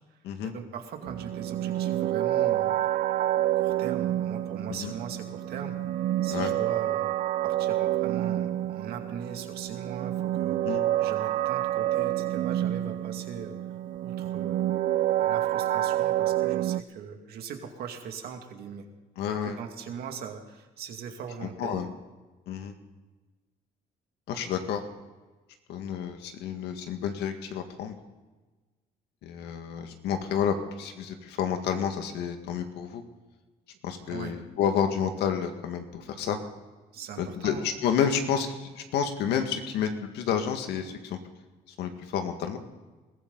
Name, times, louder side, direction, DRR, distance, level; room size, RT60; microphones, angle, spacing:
voice 1, 0.1-2.7 3.4-5.7 6.2-7.1 7.4-10.7 11.0-13.5 14.0-14.7 15.2-18.9 19.4-21.9 34.1-34.4 36.9-37.6, right 7 dB, 70° right, 4 dB, 2.3 m, -40 dB
sound 1, 1.0-16.8, right 13 dB, 50° right, 0.4 m, -28 dB
voice 2, 19.2-19.6 21.4-21.9 22.5-22.7 24.3-24.8 25.7-28.0 29.2-33.0 33.8-36.4 37.2-41.2 41.8-42.6, left 8 dB, 80° left, 6 dB, 2.0 m, -30 dB
21.0 x 15.0 x 4.1 m, 1.2 s
cardioid pair, 110°, 17 cm